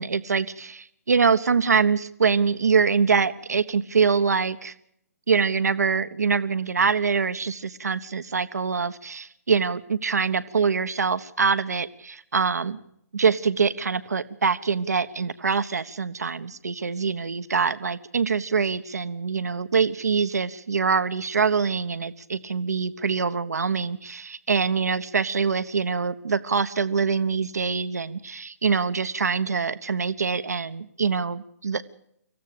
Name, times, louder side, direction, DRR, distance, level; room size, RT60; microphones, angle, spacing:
voice 1, 0.0-4.7 5.3-12.8 13.1-31.8, right 5 dB, 70° right, 10 dB, 1.2 m, -24 dB
26.5 x 15.0 x 6.8 m, 0.72 s
figure-of-eight pair, 135°, 9 cm